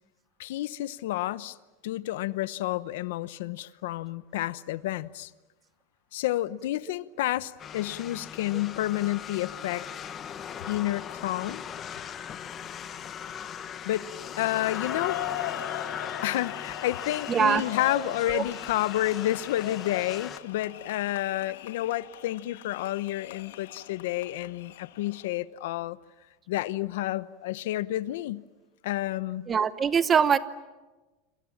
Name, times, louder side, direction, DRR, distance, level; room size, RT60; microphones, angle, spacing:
voice 1, 0.4-1.6 1.8-5.3 6.1-9.8 10.7-11.6 13.8-14.1 14.4-15.2 16.2-26.0 26.5-28.4 28.8-29.5, left 15 dB, 65° left, 0.9 m, -30 dB
sound 1, 7.6-20.4, left 8 dB, 20° left, 1.1 m, -39 dB
sound 2, 14.2-25.3, left 12 dB, 85° left, 1.9 m, -40 dB
voice 2, 17.3-17.7 18.0-18.4 29.5-30.4, right 7 dB, 15° right, 0.8 m, -23 dB
29.5 x 27.0 x 7.3 m
supercardioid pair, 175°, 0 cm